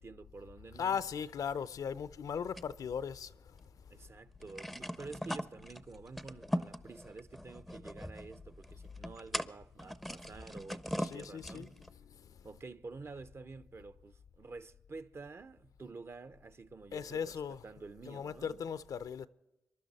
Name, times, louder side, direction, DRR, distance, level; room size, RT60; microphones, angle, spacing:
voice 1, 0.0-1.0 3.9-11.8 12.4-18.6, right 3 dB, 40° right, 0.7 m, -49 dB
voice 2, 0.7-3.3 11.0-11.8 12.1-12.4 16.9-17.6 18.0-19.3, left 7 dB, 65° left, 0.5 m, -38 dB
sound 1, 2.6-3.7 4.0-4.1 4.4-11.9, equal, ahead, 0.5 m, -41 dB
26.0 x 11.5 x 4.1 m
cardioid pair, 60°, 7 cm